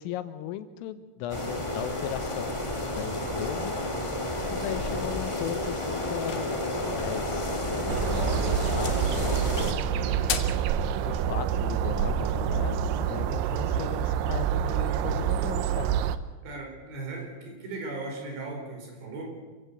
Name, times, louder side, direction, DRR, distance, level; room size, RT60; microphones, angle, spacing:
voice 1, 0.0-2.6 2.9-3.8 4.5-9.6 10.1-10.5 11.0-15.9, left 11 dB, 85° left, 11 dB, 3.7 m, -37 dB
sound 1, 1.3-9.7, left 1 dB, 15° left, 0.9 m, -31 dB
sound 2, 6.0-7.3 8.5-8.9 9.2-10.7, left 9 dB, 70° left, 2.1 m, -37 dB
sound 3, 7.9-16.2, right 8 dB, 85° right, 2.3 m, -27 dB
voice 2, 9.9-10.4 16.4-19.3, right 3 dB, 60° right, 2 dB, 6.5 m, -38 dB
27.5 x 16.0 x 8.2 m, 1.3 s
omnidirectional pair, 5.8 m